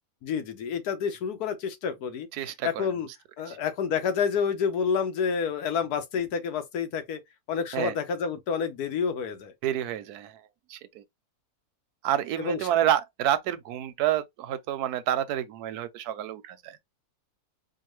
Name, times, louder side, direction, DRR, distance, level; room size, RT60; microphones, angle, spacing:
voice 1, 0.2-2.3 2.6-3.1 3.4-7.2 7.5-9.5 12.4-12.7, left 6 dB, 85° left, 1.4 m, -29 dB
voice 2, 2.3-2.9 3.5-3.6 7.7-7.9 9.6-10.4 10.7-11.0 12.0-16.8, right 11 dB, 90° right, 1.1 m, -29 dB
4.5 x 2.4 x 3.1 m
omnidirectional pair, 1.6 m